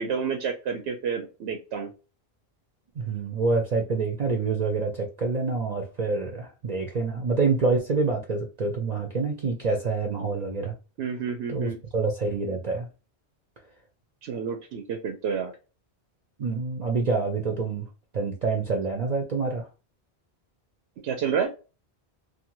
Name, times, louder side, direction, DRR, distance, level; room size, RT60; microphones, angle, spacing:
voice 1, 0.0-1.9 11.0-11.8 14.2-15.5 21.0-21.5, right 6 dB, 90° right, 0.9 m, -29 dB
voice 2, 3.0-10.7 11.5-12.9 16.4-17.8 18.1-19.7, right 4 dB, 50° right, 0.6 m, -27 dB
2.7 x 2.2 x 2.8 m
omnidirectional pair, 1.1 m